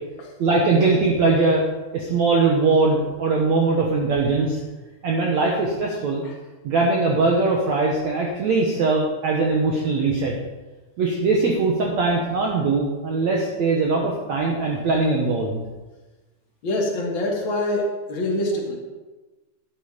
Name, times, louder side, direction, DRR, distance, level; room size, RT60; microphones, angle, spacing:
voice 1, 0.4-1.6 1.9-4.6 5.0-6.2 6.6-10.3 11.0-15.6, right 3 dB, 65° right, -1 dB, 1.8 m, -21 dB
voice 2, 16.6-18.8, left 1 dB, 45° left, 0 dB, 1.7 m, -25 dB
12.0 x 9.2 x 5.1 m, 1.2 s
omnidirectional pair, 4.7 m